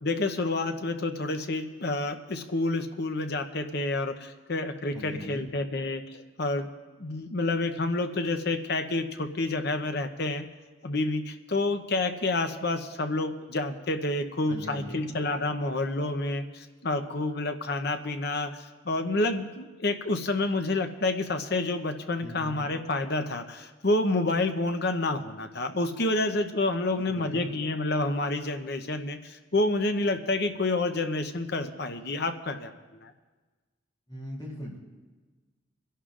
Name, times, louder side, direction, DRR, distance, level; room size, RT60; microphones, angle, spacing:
voice 1, 0.0-6.7 7.0-10.4 10.8-32.7 33.0-33.1, left 2 dB, 50° left, 7 dB, 0.8 m, -29 dB
voice 2, 4.9-5.5 14.5-15.0 22.2-22.6 26.9-27.5 34.1-34.8, equal, 20° left, -3 dB, 3.0 m, -39 dB
29.0 x 11.0 x 2.5 m, 1.3 s
head